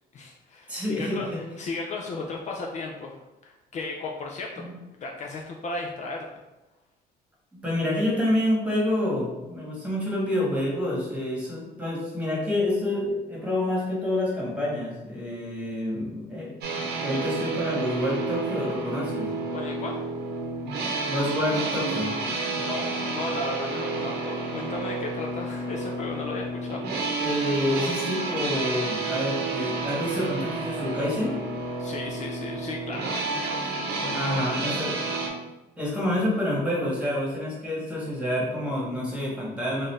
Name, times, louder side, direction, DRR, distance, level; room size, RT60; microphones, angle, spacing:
voice 1, 0.1-1.3 1.6-3.2 3.4-4.6 5.0-6.2 19.5-20.0 22.6-26.8 31.8-34.4 34.6-34.8, left 3 dB, 45° left, 1 dB, 0.4 m, -35 dB
voice 2, 0.7-1.4 4.6-4.7 7.6-16.5 17.0-19.3 21.0-22.1 27.2-31.3 34.1-35.0 35.8-39.9, left 1 dB, 5° right, -5 dB, 1.5 m, -28 dB
sound 1, 16.6-35.3, right 3 dB, 80° right, 0.8 m, -30 dB
3.8 x 2.6 x 3.2 m, 1.0 s
cardioid pair, 110°, 17 cm